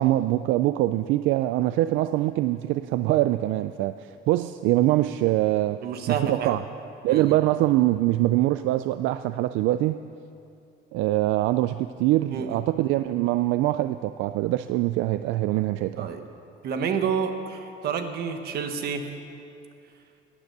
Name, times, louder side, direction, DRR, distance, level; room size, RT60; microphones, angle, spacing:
voice 1, 0.0-5.8 6.1-6.6 7.0-10.0 10.9-16.1, right 15 dB, 80° right, 11 dB, 0.4 m, -23 dB
voice 2, 5.8-6.6 7.1-7.3 12.3-12.7 15.9-16.2 16.6-19.1, right 6 dB, 55° right, 6 dB, 1.3 m, -29 dB
17.0 x 10.0 x 6.7 m, 2.6 s
cardioid pair, 155°, 20 cm